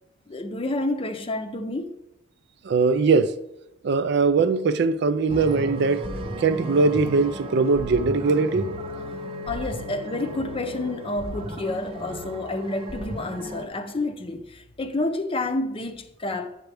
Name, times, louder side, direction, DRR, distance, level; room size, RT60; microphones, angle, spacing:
voice 1, 0.3-2.0 9.5-16.5, left 2 dB, 30° left, 0.6 m, -29 dB
voice 2, 2.6-3.4 3.8-6.1 6.4-8.8, right 4 dB, 60° right, 0.4 m, -21 dB
sound 1, 5.3-13.7, equal, 30° right, 0.7 m, -34 dB
9.0 x 7.1 x 3.4 m
head